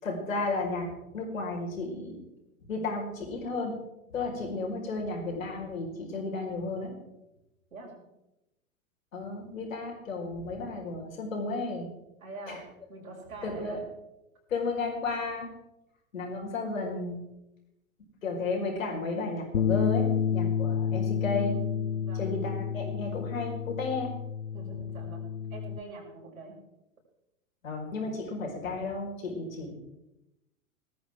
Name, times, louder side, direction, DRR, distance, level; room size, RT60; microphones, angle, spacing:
voice 1, 0.0-2.1 2.7-3.7 4.1-6.9 9.1-11.9 12.5-12.6 13.4-13.8 14.5-15.5 16.1-17.2 18.2-21.6 22.2-24.1 27.6-29.7, left 3 dB, 70° left, 0 dB, 5.2 m, -33 dB
voice 2, 12.2-13.8 21.9-22.3 24.5-25.2 25.5-26.6, right 3 dB, 75° right, -1 dB, 6.5 m, -44 dB
Bass guitar, 19.5-25.8, left 7 dB, 90° left, 0.6 m, -30 dB
19.0 x 14.0 x 3.7 m, 0.93 s
figure-of-eight pair, 95°, 41 cm